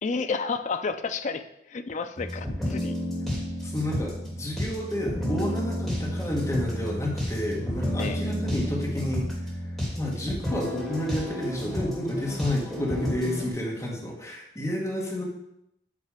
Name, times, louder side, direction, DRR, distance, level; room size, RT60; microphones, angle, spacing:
voice 1, 0.0-2.9 8.0-8.2, left 4 dB, 40° left, 9 dB, 0.4 m, -31 dB
sound 1, 2.2-13.5, equal, ahead, 2.2 m, -31 dB
voice 2, 3.6-15.2, left 1 dB, 15° left, -3 dB, 1.4 m, -31 dB
8.5 x 3.3 x 4.9 m, 0.79 s
head